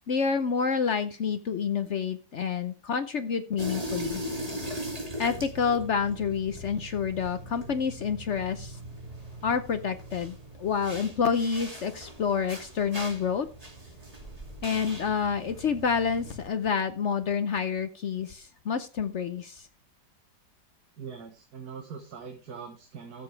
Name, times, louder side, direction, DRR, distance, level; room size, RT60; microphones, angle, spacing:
voice 1, 0.1-4.2 5.2-8.8 9.4-13.5 14.6-19.7, left 6 dB, 65° left, 10 dB, 0.7 m, -28 dB
sound 1, 3.6-16.5, equal, 20° right, 2.5 m, -40 dB
voice 2, 21.0-23.2, right 6 dB, 55° right, 3 dB, 1.8 m, -42 dB
14.0 x 7.0 x 3.4 m, 0.33 s
omnidirectional pair, 2.0 m